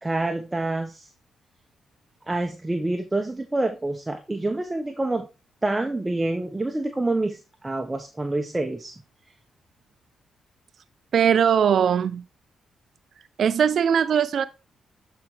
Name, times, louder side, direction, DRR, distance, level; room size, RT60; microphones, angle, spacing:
voice 1, 0.0-1.1 2.3-5.3 5.6-8.9, right 2 dB, 20° right, 1.1 m, -27 dB
voice 2, 11.1-12.2 13.4-14.5, right 8 dB, 65° right, 0.5 m, -20 dB
8.8 x 4.6 x 3.7 m
supercardioid pair, 55°, 0 cm